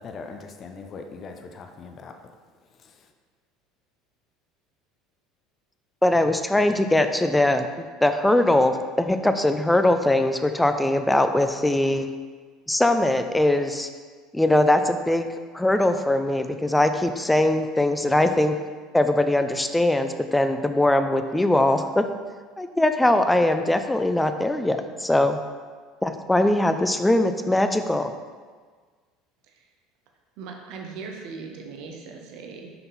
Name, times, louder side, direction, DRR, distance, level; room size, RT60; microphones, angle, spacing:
voice 1, 0.0-2.1, left 4 dB, 40° left, 5 dB, 0.7 m, -40 dB
voice 2, 6.0-12.1 12.7-13.9 14.3-15.3 15.5-18.6 18.9-22.0 22.6-25.4 26.0-28.1, left 1 dB, 10° left, 8 dB, 0.5 m, -21 dB
voice 3, 30.4-32.7, right 4 dB, 60° right, 2 dB, 0.8 m, -39 dB
5.8 x 5.4 x 4.1 m, 1.5 s
hypercardioid pair, 70°, 0 cm